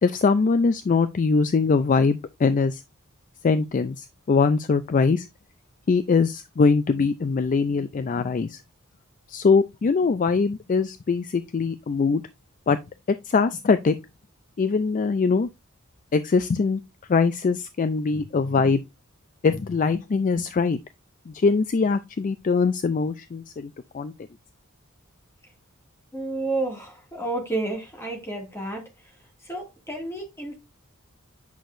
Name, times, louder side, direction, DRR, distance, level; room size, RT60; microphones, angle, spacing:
voice 1, 0.0-2.8 3.4-5.3 5.9-8.6 9.3-12.2 12.7-12.8 13.3-13.9 14.6-15.5 16.1-16.8 17.1-18.8 19.4-20.8 21.3-24.1, left 4 dB, 40° left, 0.4 m, -22 dB
voice 2, 26.1-30.6, right 2 dB, 15° left, 2.1 m, -31 dB
8.3 x 6.1 x 2.6 m
head